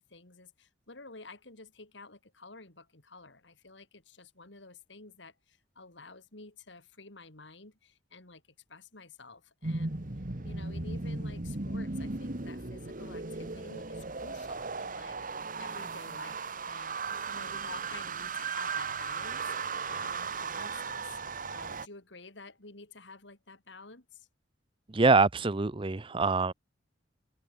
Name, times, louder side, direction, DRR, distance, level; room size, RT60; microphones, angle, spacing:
voice 1, 0.0-8.4 8.7-10.0 10.4-15.2 15.6-17.0 17.3-19.5 19.8-21.2 21.5-24.3, left 3 dB, 65° left, 3.0 m, -50 dB
sound 1, 9.6-21.9, right 4 dB, 45° right, 1.6 m, -36 dB
voice 2, 24.9-26.5, right 3 dB, 25° right, 0.6 m, -24 dB
head